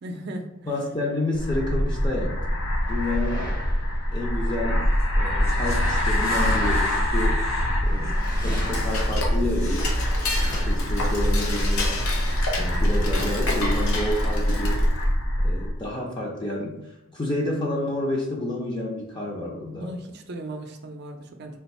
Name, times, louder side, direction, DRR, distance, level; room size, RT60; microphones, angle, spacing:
voice 1, 0.0-0.7 7.9-8.2 19.7-21.6, right 1 dB, 50° right, 5 dB, 0.5 m, -37 dB
voice 2, 0.7-2.6 2.9-3.5 4.1-4.9 5.2-7.5 7.8-8.1 8.4-9.9 10.7-11.9 12.6-14.8 15.4-16.8 17.1-19.9, left 1 dB, 20° left, -2 dB, 0.5 m, -29 dB
sound 1, 1.3-15.8, equal, 70° left, 1.1 m, -24 dB
sound 2, 2.2-5.3 5.8-12.4, left 1 dB, 40° left, 0.9 m, -40 dB
Dishes pots and pans / Cutlery silverware, 8.2-15.0, left 2 dB, 85° left, 0.7 m, -31 dB
3.4 x 2.5 x 4.1 m, 0.89 s
head